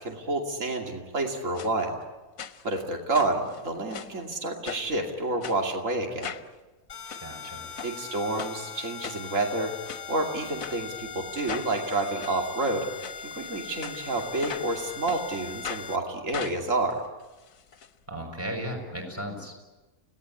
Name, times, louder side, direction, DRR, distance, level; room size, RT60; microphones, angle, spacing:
voice 1, 0.0-2.0 2.6-6.3 7.8-9.7 10.1-12.9 13.2-17.0, right 2 dB, 60° right, 2 dB, 3.0 m, -29 dB
sound 1, 1.5-1.7 2.4-2.8 3.1-4.2 4.6-5.0 5.4-5.6 6.2-6.5 6.9-7.2 7.8-7.9 8.4-8.5 9.0-9.5 9.9-10.0 10.6-10.8 11.4-11.7 12.2-12.3 13.0-13.2 13.8-14.7 15.1-15.2 15.6-15.9 16.3-17.9 18.2-18.3 18.5-18.6, left 7 dB, 70° left, 1.4 m, -38 dB
sound 2, 6.9-16.0, left 6 dB, 40° left, 1.9 m, -40 dB
voice 2, 7.2-7.7 18.1-19.6, equal, 10° right, 2 dB, 6.5 m, -35 dB
30.0 x 18.5 x 9.8 m, 1.1 s
omnidirectional pair, 1.5 m